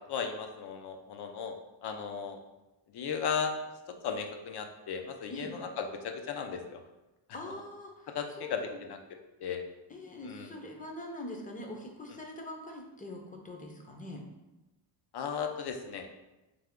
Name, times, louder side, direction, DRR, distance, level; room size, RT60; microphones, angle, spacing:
voice 1, 0.1-1.6 1.8-2.4 2.9-3.5 4.0-6.8 8.1-9.0 9.4-9.6 10.2-10.5 15.1-16.1, left 6 dB, 55° left, 5 dB, 0.6 m, -35 dB
voice 2, 7.3-8.1 8.4-8.8 9.9-14.2, left 1 dB, 15° left, 2 dB, 0.6 m, -43 dB
3.4 x 3.3 x 3.6 m, 1.0 s
cardioid pair, 125°, 47 cm